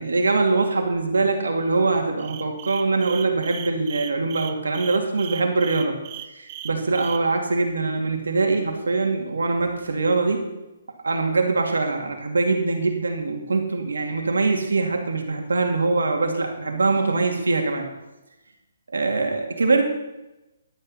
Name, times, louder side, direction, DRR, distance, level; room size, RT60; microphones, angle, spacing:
voice 1, 0.0-5.9 6.3-10.4 11.0-17.8 18.9-19.8, right 3 dB, 85° right, 3 dB, 2.5 m, -23 dB
sound 1, 2.2-7.2, right 13 dB, 30° right, 0.7 m, -37 dB
12.0 x 8.9 x 5.7 m, 0.99 s
hypercardioid pair, 150°, 0 cm